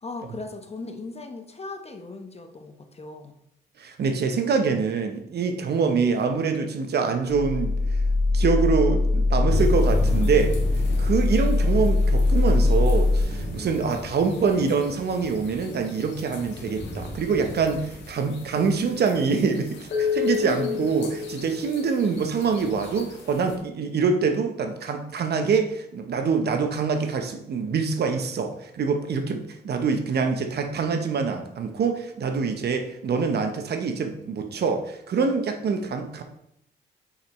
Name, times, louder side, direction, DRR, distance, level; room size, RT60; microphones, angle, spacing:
voice 1, 0.0-3.3 20.4-20.9, left 3 dB, 35° left, 5 dB, 1.0 m, -37 dB
voice 2, 3.8-7.7 8.3-10.6 11.0-36.2, right 5 dB, 60° right, 6 dB, 0.9 m, -25 dB
sound 1, 7.3-13.2, left 2 dB, 80° right, 1.9 m, -21 dB
sound 2, 9.5-23.6, left 4 dB, 75° left, 1.5 m, -34 dB
5.7 x 5.6 x 3.1 m, 0.75 s
supercardioid pair, 55°, 19 cm